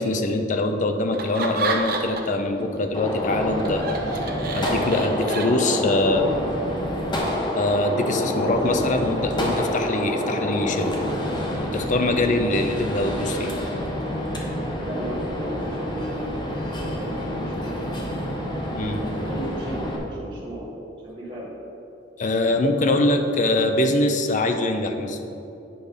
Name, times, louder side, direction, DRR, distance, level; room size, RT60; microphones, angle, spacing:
voice 1, 0.0-4.0 4.5-6.3 7.5-10.9 11.7-13.5 18.8-19.0 22.2-25.2, left 2 dB, 40° left, 6 dB, 0.5 m, -23 dB
Laughter, 1.1-2.4 2.8-6.0, right 3 dB, 50° right, 0.7 m, -29 dB
Gunshot gunfire, 2.9-20.0, equal, 25° left, 0.9 m, -28 dB
voice 2, 14.8-17.8 18.9-20.7 21.0-21.5, right 1 dB, 30° right, -10 dB, 1.4 m, -35 dB
9.2 x 3.3 x 5.3 m, 2.9 s
head